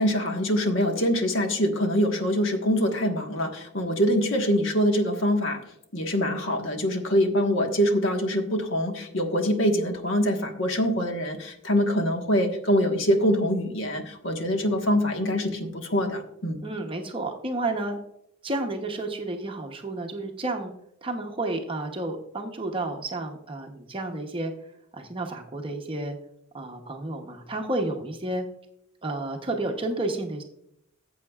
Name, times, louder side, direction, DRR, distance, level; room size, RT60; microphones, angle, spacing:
voice 1, 0.0-5.6 5.9-16.6, equal, 60° left, 4 dB, 1.4 m, -24 dB
voice 2, 16.6-18.0 18.4-20.7 21.0-24.5 24.9-26.2 26.5-28.4 29.0-30.4, right 2 dB, 25° right, 3 dB, 0.8 m, -31 dB
14.0 x 7.7 x 2.4 m, 0.76 s
head